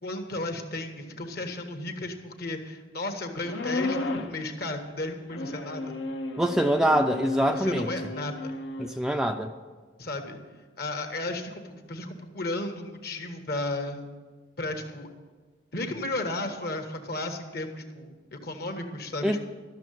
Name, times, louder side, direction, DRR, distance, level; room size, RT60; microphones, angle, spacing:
voice 1, 0.0-5.9 7.5-8.5 10.0-10.4 10.8-14.1 14.6-15.1 15.7-19.4, left 2 dB, 55° left, 5 dB, 1.4 m, -34 dB
sound 1, 3.4-4.4 5.3-8.9, left 2 dB, 70° left, 1.1 m, -34 dB
voice 2, 6.4-7.9 8.8-9.5 19.2-19.4, right 1 dB, 5° right, 4 dB, 0.5 m, -24 dB
13.0 x 6.7 x 9.2 m, 1.4 s
head